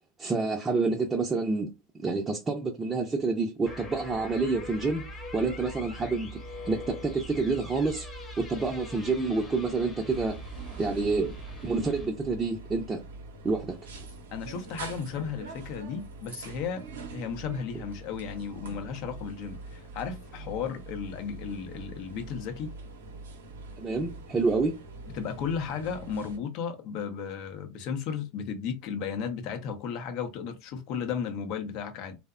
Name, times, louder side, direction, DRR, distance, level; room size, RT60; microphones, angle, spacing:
voice 1, 0.2-1.7 2.0-5.1 5.3-6.4 6.6-8.1 8.4-10.4 10.8-11.3 11.6-13.0 13.4-13.8 23.8-24.7, right 3 dB, 20° right, 0.5 m, -28 dB
sound 1, 3.7-12.1, equal, 15° left, 0.8 m, -42 dB
sound 2, 10.1-26.4, right 2 dB, 75° right, 0.6 m, -44 dB
voice 2, 14.3-16.8 17.1-22.7 25.1-32.2, left 6 dB, 55° left, 0.6 m, -34 dB
2.7 x 2.1 x 2.4 m
hypercardioid pair, 85°, 0 cm